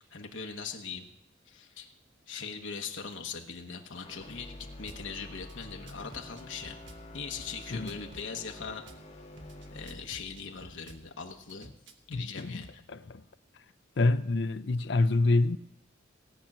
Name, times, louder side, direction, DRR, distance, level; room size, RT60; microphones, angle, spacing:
voice 1, 0.1-1.1 1.5-1.9 2.3-6.8 7.1-8.8 9.7-11.7 12.1-12.8, left 5 dB, 80° left, 1.1 m, -40 dB
sound 1, 4.0-12.2, left 1 dB, 35° left, 1.7 m, -48 dB
Drum kit / Bass drum, 4.9-5.0 5.4-7.0 7.4-9.0 9.4-11.0 11.5-12.8, right 1 dB, 75° right, 1.3 m, -52 dB
voice 2, 12.1-12.6 12.9-13.2 14.0-15.6, left 2 dB, 60° left, 0.6 m, -27 dB
17.5 x 6.0 x 8.7 m
head